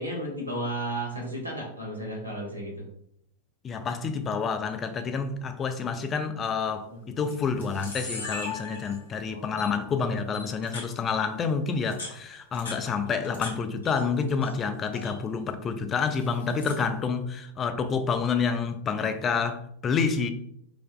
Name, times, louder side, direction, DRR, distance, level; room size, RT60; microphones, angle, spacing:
voice 1, 0.0-2.9 6.9-7.4 9.3-9.6, right 1 dB, 80° right, 1.1 m, -34 dB
voice 2, 3.6-20.3, left 5 dB, 25° left, 0.4 m, -28 dB
Camera, 6.4-6.7 7.3-7.4 7.6-9.2 9.6-9.7 10.3-10.9 11.7-13.5 13.8-14.5 14.8-15.2 16.0-16.8, left 3 dB, 70° left, 1.1 m, -39 dB
5.1 x 2.4 x 2.3 m
figure-of-eight pair, 90°, 0 cm